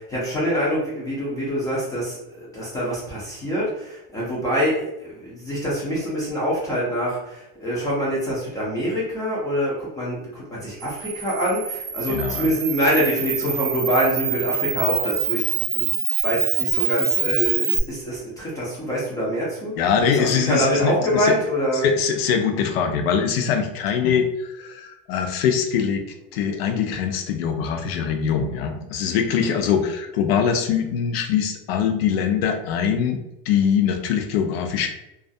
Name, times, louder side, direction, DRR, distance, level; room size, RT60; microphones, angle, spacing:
voice 1, 0.0-15.9 16.2-19.7 20.1-21.8 29.4-29.5, equal, 10° left, -6 dB, 0.4 m, -25 dB
Camera, 10.8-17.8, right 7 dB, 70° right, 0.6 m, -25 dB
voice 2, 12.1-12.5 19.8-21.4 21.7-26.0 26.3-33.2 33.5-34.9, left 7 dB, 80° left, 5 dB, 0.5 m, -22 dB
2.3 x 2.3 x 2.6 m, 0.88 s
supercardioid pair, 165°, 30 cm